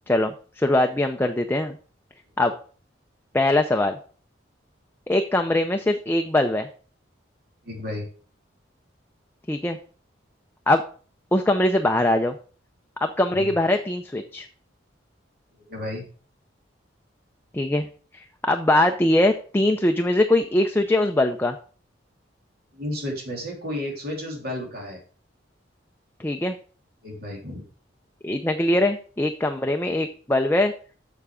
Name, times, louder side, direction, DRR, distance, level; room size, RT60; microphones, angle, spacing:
voice 1, 0.1-1.8 2.4-2.5 3.3-4.0 5.1-6.7 9.5-9.8 10.7-10.8 11.3-12.4 13.0-14.5 17.5-17.9 18.1-21.6 26.2-26.5 28.2-30.7, left 1 dB, 10° left, 5 dB, 0.5 m, -22 dB
voice 2, 7.6-8.1 13.3-13.5 15.7-16.1 22.7-25.0 27.0-27.6, left 1 dB, 55° right, 0 dB, 3.3 m, -32 dB
7.1 x 7.1 x 5.0 m, 0.41 s
head